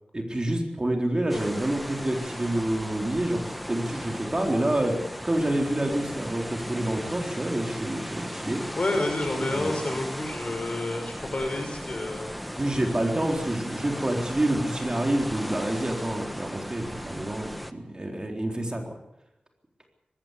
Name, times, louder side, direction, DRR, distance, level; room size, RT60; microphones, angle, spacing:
voice 1, 0.1-8.6 9.3-9.7 12.6-19.0, right 1 dB, 30° right, 3 dB, 3.9 m, -28 dB
sound 1, 1.3-17.7, equal, ahead, 1.4 m, -37 dB
voice 2, 8.7-12.3, left 2 dB, 50° left, 4 dB, 6.1 m, -29 dB
20.5 x 16.0 x 8.3 m, 0.85 s
wide cardioid pair, 65°, 3 cm